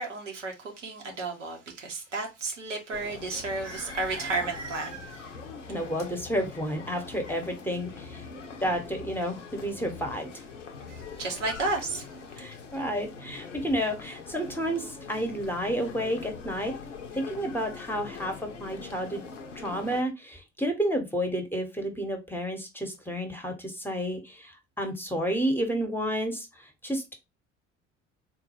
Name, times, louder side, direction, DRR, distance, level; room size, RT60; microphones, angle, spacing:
voice 1, 0.0-5.3 10.9-12.1, right 3 dB, 80° right, 0.8 m, -33 dB
sound 1, 2.9-20.0, left 5 dB, 85° left, 0.6 m, -43 dB
voice 2, 5.7-8.2 8.6-10.3 12.4-16.7 17.1-18.3 18.6-19.2 19.6-27.0, equal, 5° left, 0.8 m, -31 dB
3.8 x 2.2 x 2.8 m
figure-of-eight pair, 55°, 36 cm